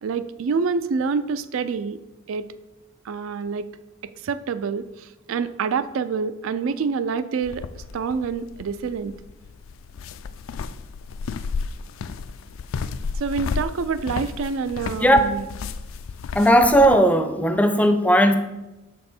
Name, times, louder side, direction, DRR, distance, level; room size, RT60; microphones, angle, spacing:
voice 1, 0.0-2.0 2.3-2.4 3.1-3.7 4.0-7.6 7.9-9.1 13.1-15.5, right 5 dB, 75° right, 13 dB, 0.4 m, -27 dB
sound 1, 7.4-17.0, left 5 dB, 75° left, 0.3 m, -33 dB
voice 2, 16.3-18.3, equal, 5° left, 7 dB, 0.4 m, -16 dB
6.6 x 5.4 x 4.3 m, 1.0 s
head